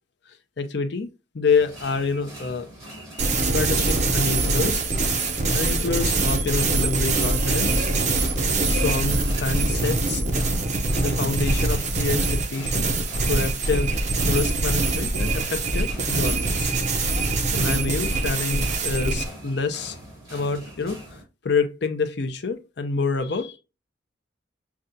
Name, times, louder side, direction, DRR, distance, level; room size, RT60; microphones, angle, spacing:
voice 1, 0.6-2.7 3.4-4.8 5.5-7.9 8.6-10.2 11.0-12.8 13.3-16.8 17.5-20.0 20.3-23.6, left 4 dB, 55° left, 0.6 m, -27 dB
sound 1, 1.5-21.2, right 1 dB, 15° right, 2.6 m, -42 dB
sound 2, 3.2-19.3, right 3 dB, 35° right, 0.7 m, -23 dB
6.6 x 2.4 x 2.6 m
head